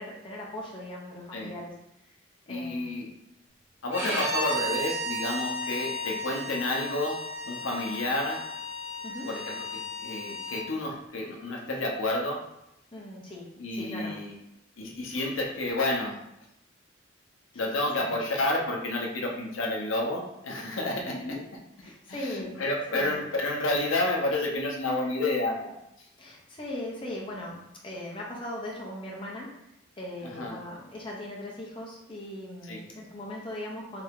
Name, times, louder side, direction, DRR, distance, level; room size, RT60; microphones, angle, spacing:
voice 1, 0.0-1.7 2.0-2.1 2.5-3.1 4.0-4.3 6.1-6.2 9.0-9.3 12.9-14.2 18.0-18.2 21.1-21.4 21.8-22.6 22.9-23.2 26.2-29.5 30.0-34.0, left 1 dB, 25° left, -4 dB, 0.7 m, -39 dB
voice 2, 2.5-3.1 3.8-7.2 7.5-8.4 9.3-12.4 13.6-14.3 14.8-16.2 17.5-21.1 22.1-25.7 30.2-30.6 32.7-32.8, left 2 dB, 75° left, 0 dB, 0.7 m, -30 dB
Bowed string instrument, 3.9-10.7, left 1 dB, 10° right, 0.9 m, -34 dB
3.3 x 2.8 x 3.6 m, 0.83 s
head